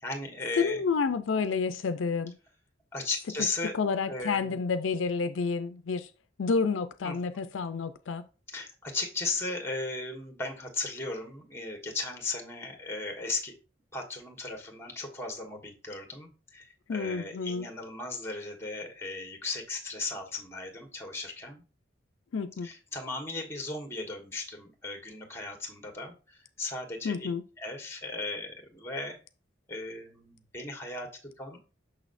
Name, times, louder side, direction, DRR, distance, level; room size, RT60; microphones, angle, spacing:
voice 1, 0.0-0.8 2.9-3.7 4.1-4.6 7.0-7.4 8.5-13.5 13.9-21.6 22.6-27.3 27.6-29.2 29.7-31.6, left 3 dB, 15° left, 1.3 m, -36 dB
voice 2, 0.6-2.3 3.7-6.1 6.4-8.2 16.9-17.7 22.3-22.7 27.0-27.4, left 5 dB, 85° left, 0.4 m, -29 dB
6.3 x 6.1 x 2.5 m
head